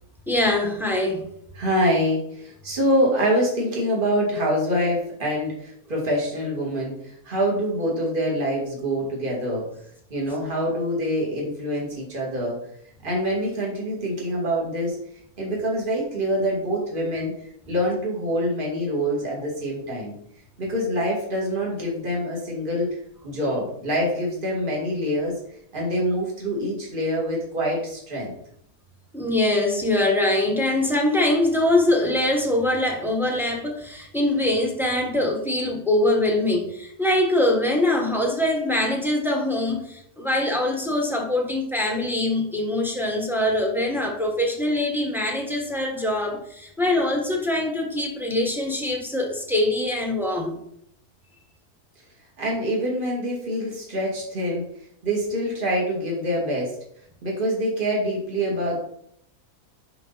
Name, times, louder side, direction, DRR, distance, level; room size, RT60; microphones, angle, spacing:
voice 1, 0.3-1.2 29.1-50.6, left 1 dB, ahead, 1 dB, 1.3 m, -23 dB
voice 2, 1.6-9.6 10.1-12.6 13.0-15.0 15.4-17.3 17.7-20.1 20.6-22.9 23.2-25.3 25.7-28.3 52.4-54.7 55.0-56.8 57.2-58.8, equal, 35° right, -3 dB, 2.3 m, -25 dB
10.5 x 4.0 x 4.1 m, 0.70 s
omnidirectional pair, 1.6 m